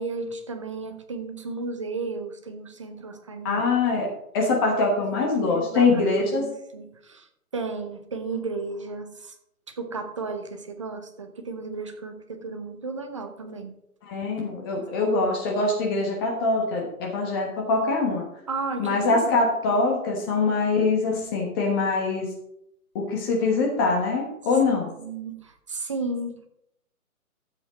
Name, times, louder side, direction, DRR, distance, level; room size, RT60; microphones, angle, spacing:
voice 1, 0.0-3.6 5.4-6.5 6.7-7.3 7.5-9.3 9.7-13.7 18.5-19.8 25.0-26.5, right 3 dB, 20° right, 6 dB, 0.6 m, -34 dB
voice 2, 3.4-4.1 4.3-6.5 14.0-18.2 18.8-22.3 22.9-24.9, left 3 dB, 15° left, 0 dB, 1.2 m, -23 dB
12.5 x 7.3 x 4.1 m, 0.78 s
figure-of-eight pair, 150°, 45 cm